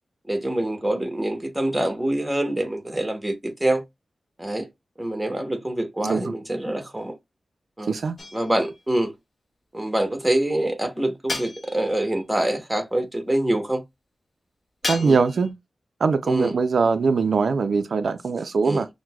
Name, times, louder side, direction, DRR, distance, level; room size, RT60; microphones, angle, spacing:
voice 1, 0.3-3.8 4.4-4.7 5.0-7.1 7.8-7.9 8.3-9.1 9.7-13.8 15.0-15.2 16.2-16.5 18.6-18.8, right 1 dB, 5° right, 0.9 m, -25 dB
voice 2, 6.0-6.3 7.9-8.2 14.9-15.5 16.0-18.9, right 4 dB, 70° right, 0.3 m, -22 dB
sound 1, 8.2-8.8 11.3-12.1 14.8-15.5, left 2 dB, 45° left, 0.9 m, -33 dB
5.9 x 2.1 x 2.2 m
wide cardioid pair, 115°, 0 cm